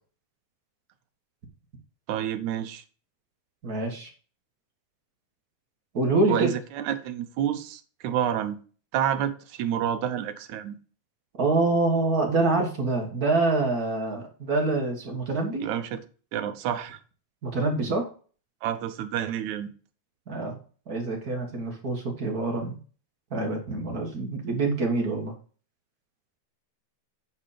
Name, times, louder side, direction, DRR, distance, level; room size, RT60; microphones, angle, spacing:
voice 1, 2.1-2.8 6.3-8.6 8.9-10.8 15.6-16.0 16.3-17.0 18.6-19.7, right 10 dB, 75° right, 2.1 m, -29 dB
voice 2, 3.6-4.1 5.9-6.5 11.4-15.7 17.4-18.1 20.3-20.6 20.9-22.8 23.3-25.3, right 3 dB, 40° right, 1.5 m, -26 dB
9.8 x 4.2 x 5.0 m
omnidirectional pair, 3.6 m